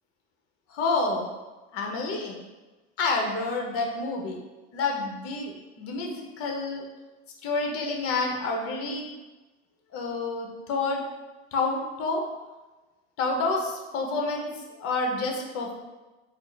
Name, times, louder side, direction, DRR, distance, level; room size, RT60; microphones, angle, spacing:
voice 1, 0.7-1.3 1.7-2.4 3.0-4.4 4.7-6.8 7.4-9.1 9.9-11.0 11.5-12.2 13.2-14.5 14.8-15.7, left 3 dB, 45° left, 1 dB, 0.8 m, -28 dB
4.2 x 2.0 x 3.3 m, 1.2 s
hypercardioid pair, 100°, 32 cm